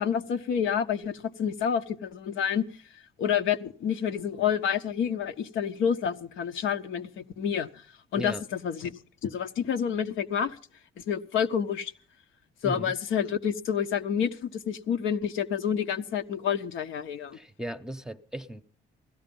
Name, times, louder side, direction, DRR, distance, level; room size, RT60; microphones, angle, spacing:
voice 1, 0.0-2.7 3.2-7.7 8.1-8.9 9.2-10.6 11.1-11.9 12.6-17.4, left 8 dB, 80° left, 1.0 m, -28 dB
voice 2, 12.6-12.9 17.3-18.6, right 1 dB, 5° right, 0.8 m, -36 dB
16.5 x 13.0 x 5.4 m
cardioid pair, 90°, 20 cm